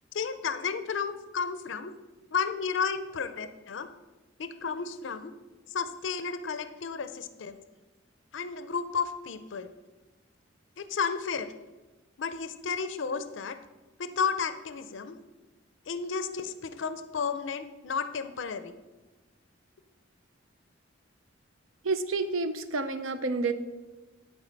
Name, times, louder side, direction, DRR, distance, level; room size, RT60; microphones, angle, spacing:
voice 1, 0.1-1.9 2.3-3.9 4.4-5.3 5.7-7.6 8.3-9.7 10.8-11.5 12.2-13.6 14.0-15.2 15.9-18.7, left 5 dB, 65° left, 11 dB, 0.5 m, -32 dB
voice 2, 21.8-23.5, right 3 dB, 80° right, 10 dB, 0.6 m, -29 dB
10.5 x 4.6 x 5.2 m, 1.2 s
head